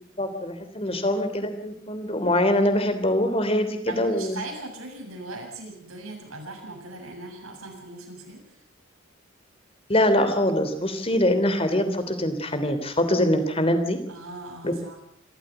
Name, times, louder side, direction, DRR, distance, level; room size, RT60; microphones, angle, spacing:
voice 1, 0.2-4.4 9.9-14.0 14.6-14.7, left 1 dB, 25° left, 9 dB, 3.2 m, -23 dB
voice 2, 3.8-8.6 14.1-15.0, right 2 dB, 90° right, 2 dB, 7.6 m, -39 dB
26.5 x 14.0 x 8.0 m, 0.72 s
head